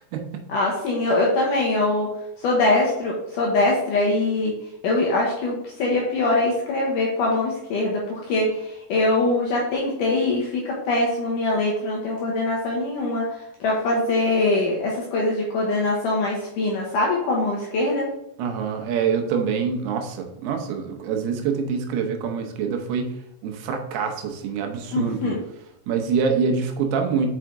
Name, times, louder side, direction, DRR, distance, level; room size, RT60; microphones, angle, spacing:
voice 1, 0.5-2.1 2.4-4.5 4.8-13.3 13.6-18.1 24.9-25.4, left 2 dB, 70° left, -2 dB, 2.1 m, -23 dB
voice 2, 18.4-23.1 23.4-25.3 25.9-27.3, right 6 dB, 75° right, 4 dB, 2.8 m, -25 dB
5.8 x 5.7 x 3.7 m, 0.83 s
omnidirectional pair, 4.8 m